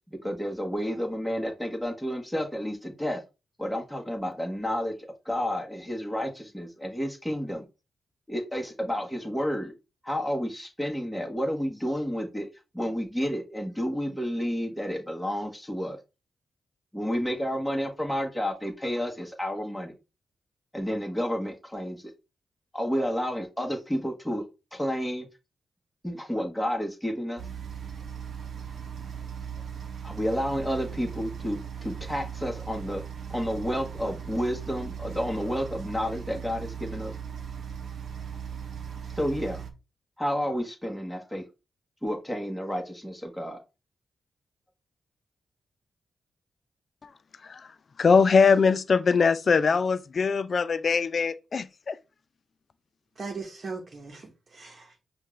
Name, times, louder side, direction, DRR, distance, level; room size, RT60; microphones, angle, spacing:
voice 1, 0.1-3.2 3.6-4.9 5.2-7.6 8.3-9.7 10.0-12.5 12.7-16.0 16.9-20.0 20.7-22.1 22.7-24.4 24.7-25.3 26.0-27.4 30.0-33.0 33.3-37.1 39.1-39.6 40.2-41.5 42.0-43.6, equal, 5° left, 1.4 m, -30 dB
sound 1, 27.4-39.7, right 7 dB, 70° right, 0.7 m, -38 dB
voice 2, 48.0-52.0, left 5 dB, 55° left, 0.4 m, -22 dB
voice 3, 53.2-55.0, right 4 dB, 50° right, 1.0 m, -39 dB
5.5 x 2.5 x 3.2 m
cardioid pair, 60°, 0 cm